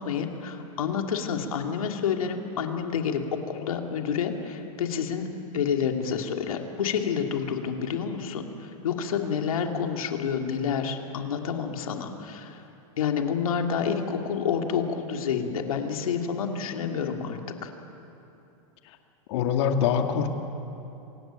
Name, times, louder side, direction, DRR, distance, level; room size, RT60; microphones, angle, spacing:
voice 1, 0.0-5.3 5.5-12.6 13.0-17.7, left 7 dB, 85° left, 3 dB, 2.7 m, -29 dB
voice 2, 19.3-20.3, left 7 dB, 55° left, 5 dB, 2.2 m, -24 dB
26.0 x 16.5 x 9.0 m, 2.9 s
supercardioid pair, 150°, 18 cm